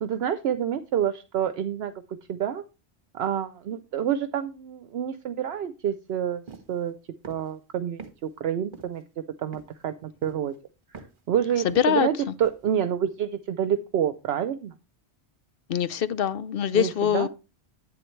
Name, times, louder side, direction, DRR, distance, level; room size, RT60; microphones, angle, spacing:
voice 1, 0.0-1.9 2.3-2.6 3.1-6.4 6.7-6.9 7.3-9.0 9.4-10.5 11.3-14.7 16.7-17.3, right 9 dB, 70° right, 0.9 m, -28 dB
sound 1, 6.5-6.7 7.2-7.5 8.0-8.2 8.7-9.0 9.5-9.8 10.2-10.6 10.9-11.2 11.7-12.1 12.4-12.6, right 4 dB, 50° right, 1.3 m, -44 dB
voice 2, 11.6-12.1 15.7-17.3, left 9 dB, 60° left, 0.8 m, -23 dB
11.0 x 8.8 x 3.2 m
omnidirectional pair, 1.1 m